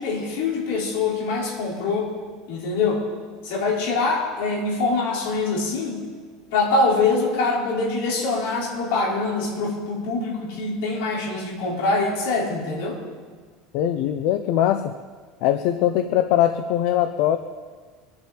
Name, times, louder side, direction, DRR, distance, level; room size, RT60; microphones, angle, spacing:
voice 1, 0.0-2.1 2.5-3.0 3.4-6.0 6.5-13.0, left 3 dB, 75° left, -4 dB, 5.2 m, -24 dB
voice 2, 13.7-14.9 15.4-17.4, left 11 dB, 55° left, 9 dB, 0.7 m, -21 dB
24.0 x 10.5 x 4.5 m, 1.5 s
cardioid pair, 160°, 0 cm